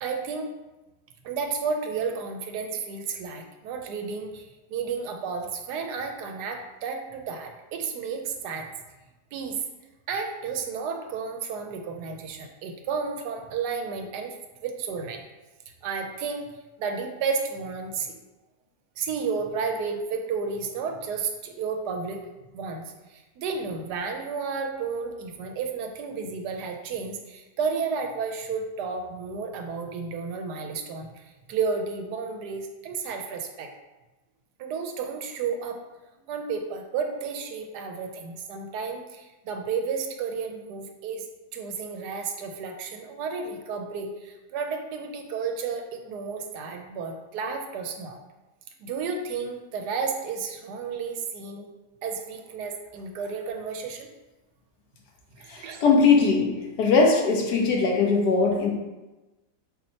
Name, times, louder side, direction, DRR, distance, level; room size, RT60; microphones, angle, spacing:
voice 1, 0.0-0.5 1.2-8.7 9.3-9.6 10.1-14.3 14.6-15.2 15.8-16.5 16.8-18.1 19.0-22.2 22.5-31.1 31.5-33.7 34.6-35.8 36.3-41.2 41.5-48.2 48.8-51.7 52.0-54.1 55.4-55.8, right 5 dB, 85° right, 4 dB, 1.2 m, -32 dB
voice 2, 55.4-56.5 56.8-58.7, left 4 dB, 75° left, 0 dB, 1.4 m, -20 dB
4.4 x 4.2 x 2.8 m, 1.1 s
omnidirectional pair, 1.7 m